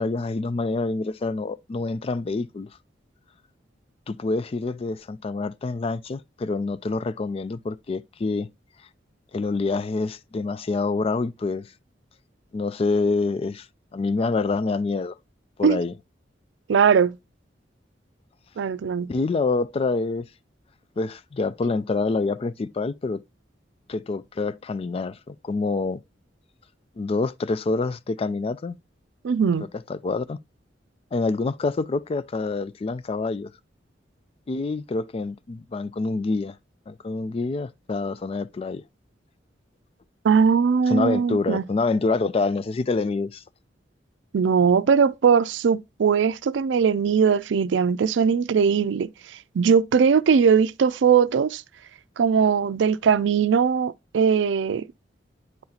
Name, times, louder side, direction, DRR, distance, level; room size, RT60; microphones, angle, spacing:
voice 1, 0.0-2.7 4.1-8.5 9.3-11.7 12.5-13.7 13.9-15.2 15.6-15.9 19.1-20.3 21.0-23.2 23.9-26.0 27.0-28.8 29.9-30.4 31.1-33.5 34.5-36.6 36.9-38.8 40.9-43.4, left 3 dB, 30° left, 0.3 m, -26 dB
voice 2, 16.7-17.2 18.6-19.1 29.2-29.7 40.2-41.6 44.3-49.1 49.5-51.6 52.2-54.9, right 6 dB, 90° right, 0.4 m, -20 dB
9.5 x 4.0 x 2.8 m
head